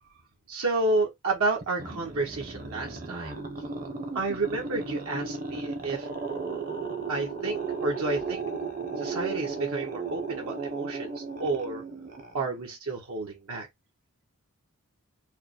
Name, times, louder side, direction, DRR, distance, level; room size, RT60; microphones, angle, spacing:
voice 1, 0.5-3.4 4.1-6.1 7.1-8.4 9.0-11.8 12.3-13.7, right 3 dB, 75° right, 1.0 m, -30 dB
sound 1, 1.6-12.7, right 4 dB, 40° right, 0.8 m, -35 dB
4.7 x 2.1 x 3.0 m
head